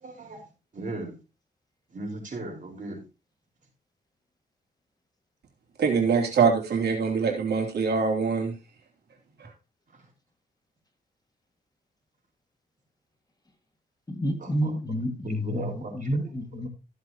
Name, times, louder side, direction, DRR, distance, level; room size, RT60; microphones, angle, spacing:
voice 1, 0.0-0.4 0.7-1.1 1.9-3.0 14.4-14.7 15.2-16.3, right 2 dB, 45° right, 5.0 m, -37 dB
voice 2, 5.8-8.5, right 5 dB, 65° right, 3.0 m, -24 dB
voice 3, 14.1-16.7, equal, 20° left, 2.0 m, -29 dB
14.5 x 7.8 x 2.9 m
cardioid pair, 100°, 18 cm